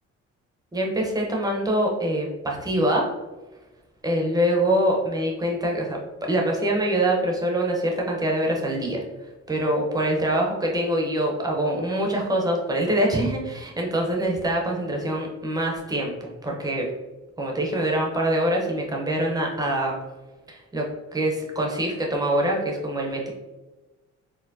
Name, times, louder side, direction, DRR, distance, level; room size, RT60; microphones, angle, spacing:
voice 1, 0.7-3.1 4.0-9.0 9.5-16.9 17.4-20.0 20.5-20.8 21.1-23.3, right 1 dB, 15° right, -1 dB, 0.8 m, -24 dB
4.3 x 2.0 x 2.7 m, 1.1 s
cardioid pair, 105°, 29 cm